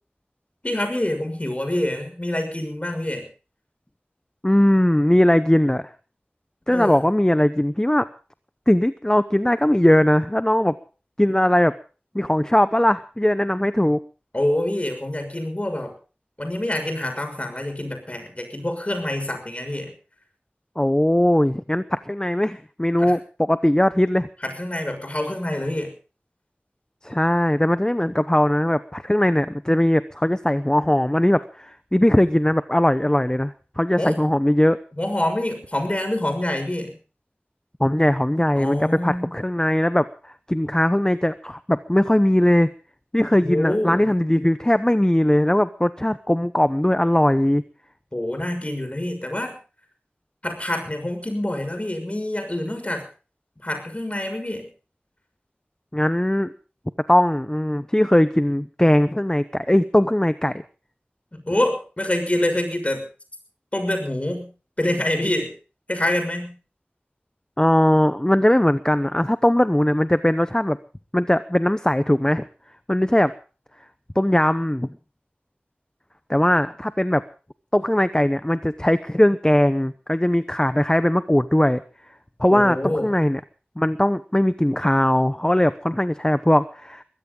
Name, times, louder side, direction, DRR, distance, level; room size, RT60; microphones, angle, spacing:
voice 1, 0.6-3.3 6.7-7.0 14.3-15.9 16.4-19.9 23.0-23.2 24.4-25.9 34.0-34.3 35.0-36.9 38.6-39.3 43.3-44.1 48.1-49.6 50.4-53.0 53.6-54.7 61.3-63.0 63.7-64.5 64.8-65.5 65.9-66.6 82.5-83.1, left 1 dB, 35° left, 6 dB, 6.2 m, -26 dB
voice 2, 4.4-5.9 6.7-8.1 8.7-10.7 11.2-11.7 12.1-14.0 20.8-24.3 27.0-34.8 37.8-42.7 43.1-47.6 55.9-56.5 57.1-60.6 67.6-70.8 71.1-72.4 72.9-73.3 74.2-74.9 76.3-77.2 77.7-81.8 82.4-83.4 83.8-87.0, left 1 dB, 20° left, 12 dB, 0.9 m, -19 dB
22.0 x 16.0 x 3.9 m, 0.37 s
wide cardioid pair, 50°, 4 cm